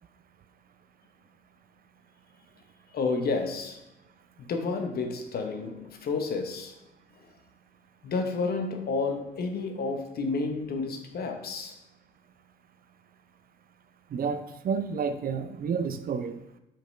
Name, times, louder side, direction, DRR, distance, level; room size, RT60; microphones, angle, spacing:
voice 1, 2.9-3.8 4.4-6.8 8.0-11.8, left 4 dB, 55° left, 1.0 m, -30 dB
voice 2, 14.1-16.4, right 6 dB, 50° right, 0.6 m, -30 dB
5.9 x 5.1 x 3.3 m
hypercardioid pair, 60°, 20 cm